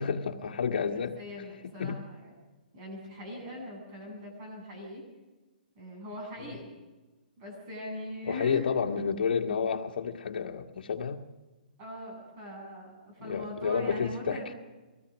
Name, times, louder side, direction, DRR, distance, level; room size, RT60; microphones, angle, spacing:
voice 1, 0.0-1.1 1.8-2.0 6.5-6.6 8.2-11.2 13.2-14.4, left 6 dB, 65° left, 4 dB, 1.7 m, -30 dB
voice 2, 0.7-2.3 2.7-5.0 5.7-6.7 7.4-8.7 11.8-14.5, left 1 dB, 30° right, 0 dB, 8.0 m, -41 dB
23.5 x 17.5 x 6.3 m, 1.2 s
hypercardioid pair, 160°, 5 cm